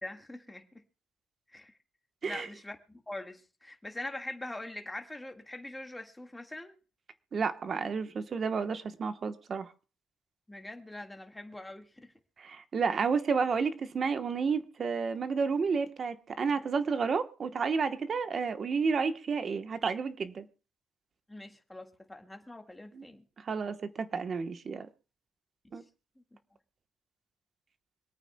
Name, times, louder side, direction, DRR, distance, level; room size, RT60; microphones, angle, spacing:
voice 1, 0.0-0.8 1.5-1.7 2.2-6.8 10.5-12.1 21.3-23.3 25.6-25.7, left 1 dB, 10° left, 1.7 m, -43 dB
voice 2, 7.3-9.7 12.4-20.4 22.9-23.0 23.4-24.9 25.7-25.8, right 5 dB, 45° right, 1.0 m, -31 dB
25.5 x 9.0 x 2.2 m
cardioid pair, 90°, 0 cm